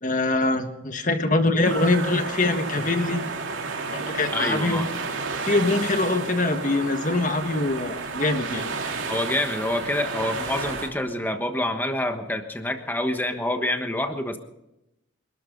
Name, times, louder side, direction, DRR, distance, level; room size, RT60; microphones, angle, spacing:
voice 1, 0.0-3.2 3.9-4.8 5.4-8.7, left 2 dB, 40° left, 7 dB, 1.6 m, -23 dB
sound 1, 1.4-11.4, right 1 dB, 60° right, 6.2 m, -51 dB
sound 2, 1.6-10.9, right 4 dB, 90° right, 2.8 m, -31 dB
voice 2, 4.3-4.9 9.1-14.4, left 1 dB, 10° left, 6 dB, 1.2 m, -27 dB
27.5 x 12.5 x 3.9 m, 0.90 s
head